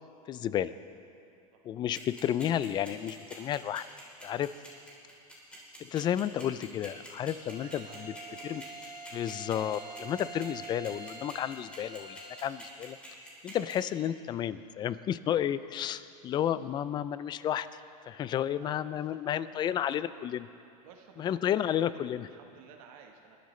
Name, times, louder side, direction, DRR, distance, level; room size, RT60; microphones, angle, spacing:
voice 1, 0.3-0.7 1.6-3.8 4.2-4.5 5.8-8.1 8.4-8.6 9.1-13.0 13.4-17.7 18.1-20.5 21.2-22.3, left 10 dB, 25° left, 15 dB, 0.3 m, -32 dB
sound 1, 1.9-13.7, right 1 dB, 5° left, 3.3 m, -47 dB
Bowed string instrument, 7.4-12.6, right 3 dB, 20° right, 1.8 m, -46 dB
voice 2, 7.4-8.7 18.6-20.0 20.8-23.4, right 7 dB, 70° right, 3 dB, 1.3 m, -55 dB
22.0 x 12.0 x 3.2 m, 2.5 s
supercardioid pair, 140°, 19 cm